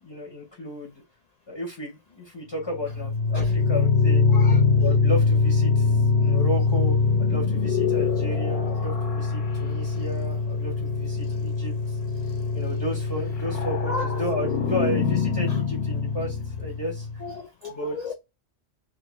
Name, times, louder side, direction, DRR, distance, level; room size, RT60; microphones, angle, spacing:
voice 1, 0.0-0.9 1.5-4.2 4.8-12.0 12.5-17.1 17.6-18.1, equal, 25° left, 0.8 m, -33 dB
sound 1, 2.7-17.3, left 4 dB, 55° left, 0.9 m, -23 dB
voice 2, 4.3-4.9 13.9-14.1 17.4-18.1, left 3 dB, 70° left, 0.3 m, -33 dB
2.8 x 2.7 x 3.0 m
omnidirectional pair, 1.3 m